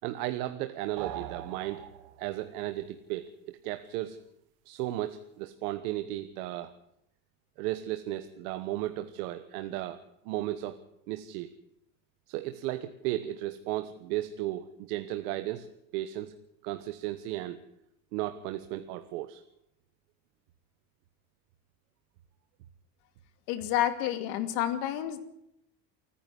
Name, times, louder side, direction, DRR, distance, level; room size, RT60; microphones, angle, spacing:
voice 1, 0.0-1.8 2.2-4.2 4.6-6.7 7.6-10.0 10.2-10.8 11.1-11.5 12.3-16.3 16.6-17.6 18.1-19.4, right 14 dB, 85° right, 9 dB, 1.4 m, -35 dB
sound 1, 1.0-2.5, right 12 dB, 55° right, 1.6 m, -41 dB
voice 2, 23.5-25.2, left 12 dB, 75° left, 10 dB, 2.7 m, -29 dB
28.5 x 10.0 x 9.9 m, 0.79 s
cardioid pair, 145°, 45 cm